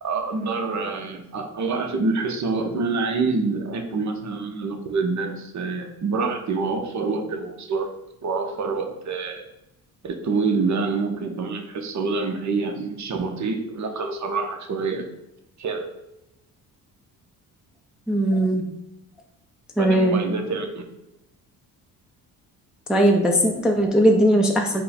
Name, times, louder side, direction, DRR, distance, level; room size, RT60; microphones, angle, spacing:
voice 1, 0.0-7.9 8.2-9.5 10.0-15.1 15.6-15.9 19.8-20.8, right 4 dB, 40° right, 5 dB, 0.8 m, -26 dB
voice 2, 18.1-18.6 19.8-20.2 22.9-24.8, right 1 dB, ahead, 1 dB, 0.6 m, -19 dB
5.2 x 2.2 x 4.2 m, 0.88 s
supercardioid pair, 65°, 43 cm